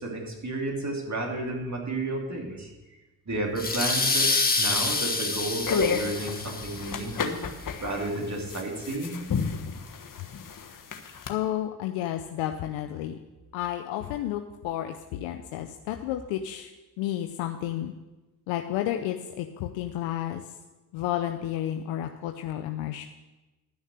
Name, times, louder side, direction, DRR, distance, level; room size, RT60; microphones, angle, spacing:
voice 1, 0.0-2.7 3.2-7.4 7.8-9.3, right 2 dB, 40° right, -1 dB, 3.2 m, -32 dB
sound 1, 3.6-7.0, left 3 dB, 20° left, 1.5 m, -27 dB
sound 2, 5.4-11.3, left 5 dB, 45° left, 1.4 m, -32 dB
voice 2, 11.3-13.1 13.5-16.7 17.0-17.9 18.5-20.4 20.9-23.0, left 12 dB, 80° left, 5 dB, 0.7 m, -31 dB
12.0 x 6.4 x 6.5 m, 1.1 s
hypercardioid pair, 50°, 44 cm